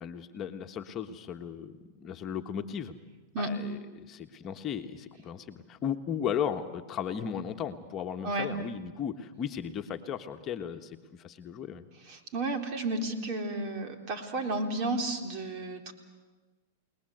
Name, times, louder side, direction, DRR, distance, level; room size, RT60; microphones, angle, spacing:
voice 1, 0.0-2.9 3.4-11.8, left 8 dB, 30° left, 5 dB, 1.4 m, -36 dB
voice 2, 12.1-15.9, right 2 dB, 45° right, 4 dB, 3.9 m, -32 dB
30.0 x 20.0 x 8.1 m, 1.3 s
hypercardioid pair, 115°, 0 cm